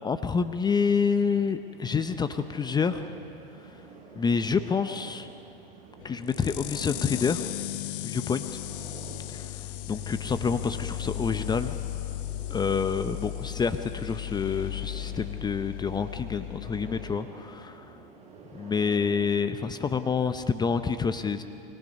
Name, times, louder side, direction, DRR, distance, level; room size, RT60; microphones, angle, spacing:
voice 1, 0.0-3.1 4.1-5.3 6.0-7.5 8.0-8.4 9.3-9.5 9.9-11.8 12.5-18.0 18.5-21.4, left 5 dB, 15° left, 10 dB, 0.7 m, -28 dB
sound 1, 0.7-19.6, right 4 dB, 25° right, 6.6 m, -49 dB
sound 2, 6.0-17.2, left 15 dB, 60° left, 0.6 m, -36 dB
28.0 x 25.0 x 5.4 m, 2.6 s
hypercardioid pair, 110°, 30 cm